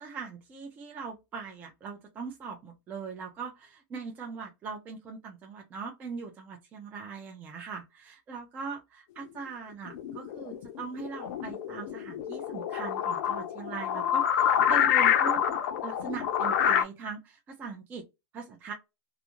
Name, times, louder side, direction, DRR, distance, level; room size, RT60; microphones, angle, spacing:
voice 1, 0.0-15.4 15.8-18.0 18.3-18.7, right 5 dB, 15° right, 0.4 m, -40 dB
sound 1, 9.9-16.8, left 9 dB, 55° left, 0.5 m, -27 dB
2.4 x 2.4 x 2.9 m
supercardioid pair, 170°, 11 cm